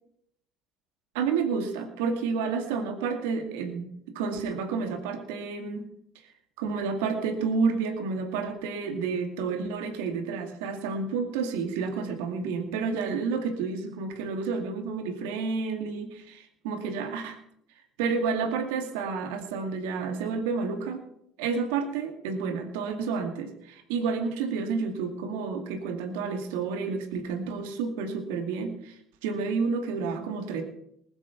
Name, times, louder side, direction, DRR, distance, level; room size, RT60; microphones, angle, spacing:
voice 1, 1.1-3.9 4.1-5.8 6.6-17.4 18.0-21.0 21.4-30.6, right 5 dB, 75° right, 5 dB, 2.2 m, -30 dB
19.5 x 9.2 x 5.8 m, 0.72 s
hypercardioid pair, 70°, 0 cm